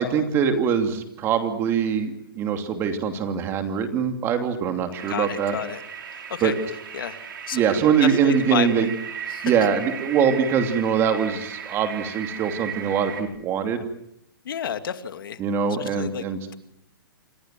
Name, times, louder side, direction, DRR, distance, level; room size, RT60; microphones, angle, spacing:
voice 1, 0.0-5.6 6.4-6.5 7.5-8.9 9.4-13.8 15.4-16.4, right 7 dB, 20° right, 7 dB, 2.8 m, -23 dB
sound 1, 4.9-13.2, right 7 dB, 60° right, 6.1 m, -36 dB
voice 2, 5.1-5.8 6.3-6.5 6.9-7.2 7.5-7.6 8.0-8.9 9.3-9.5 14.4-15.4 15.8-16.2, left 8 dB, 70° left, 9 dB, 2.4 m, -30 dB
28.0 x 23.5 x 7.7 m, 0.76 s
hypercardioid pair, 160°, 12 cm